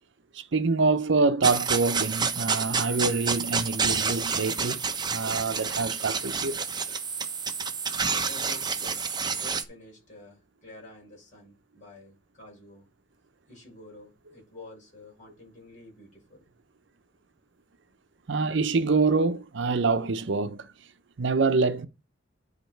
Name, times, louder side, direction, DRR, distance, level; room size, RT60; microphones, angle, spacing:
voice 1, 0.3-4.8 5.1-6.5 18.3-20.7 21.2-21.9, right 4 dB, 70° right, 0.7 m, -25 dB
sound 1, 1.4-9.6, right 5 dB, 25° right, 0.8 m, -29 dB
voice 2, 8.3-12.9 13.5-16.5, left 2 dB, 40° left, 6.3 m, -49 dB
10.0 x 5.0 x 4.6 m
head